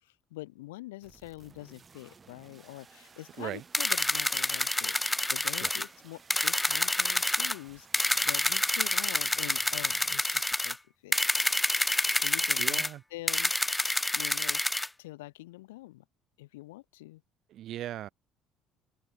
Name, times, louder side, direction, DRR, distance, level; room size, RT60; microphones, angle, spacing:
voice 1, 0.0-10.8 11.0-11.2 12.2-12.8 13.1-13.5 14.1-14.6 15.0-16.1 16.4-17.2, left 19 dB, 85° left, 5.2 m, -45 dB
sound 1, 1.0-10.2, right 5 dB, 35° right, 3.8 m, -56 dB
sound 2, 3.7-5.9 6.3-7.6 7.9-10.8 11.1-12.9 13.3-14.9, left 1 dB, 10° left, 0.5 m, -28 dB
voice 2, 12.6-13.0 17.5-18.1, right 12 dB, 60° right, 0.8 m, -38 dB
open air
hypercardioid pair, 65°, 0 cm